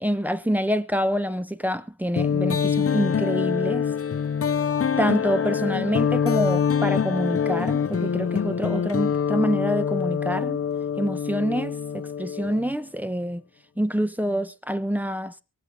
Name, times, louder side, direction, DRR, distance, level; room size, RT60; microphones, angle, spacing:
voice 1, 0.0-3.9 5.0-10.6 11.0-13.4 13.8-15.3, equal, 5° right, 1.0 m, -26 dB
sound 1, 2.2-12.7, left 7 dB, 45° left, 0.7 m, -25 dB
24.0 x 8.2 x 3.5 m
wide cardioid pair, 100°, 32 cm